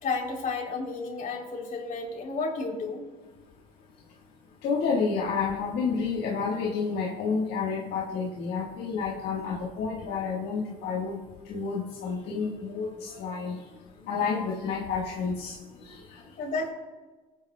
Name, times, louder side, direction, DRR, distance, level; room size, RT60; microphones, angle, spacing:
voice 1, 0.0-3.0 16.4-16.7, left 3 dB, 55° left, 0 dB, 3.3 m, -32 dB
voice 2, 4.6-11.2 11.5-13.6 14.1-15.6 15.9-16.0, left 5 dB, 85° left, -4 dB, 1.5 m, -30 dB
19.5 x 9.0 x 2.2 m, 1.3 s
cardioid pair, 110°, 17 cm